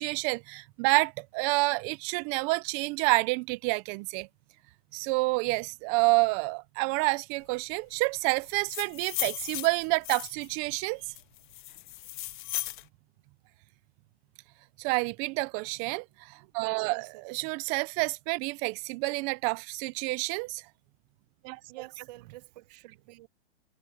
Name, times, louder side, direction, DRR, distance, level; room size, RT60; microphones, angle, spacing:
voice 1, 0.0-4.3 4.9-11.0 14.8-20.6 21.4-21.6, right 27 dB, 25° right, 0.5 m, -29 dB
sound 1, 8.5-10.5 11.1-12.8, left 16 dB, 50° left, 1.1 m, -36 dB
voice 2, 16.8-17.2 21.7-23.3, right 19 dB, 40° right, 1.3 m, -48 dB
hypercardioid pair, 140°, 32 cm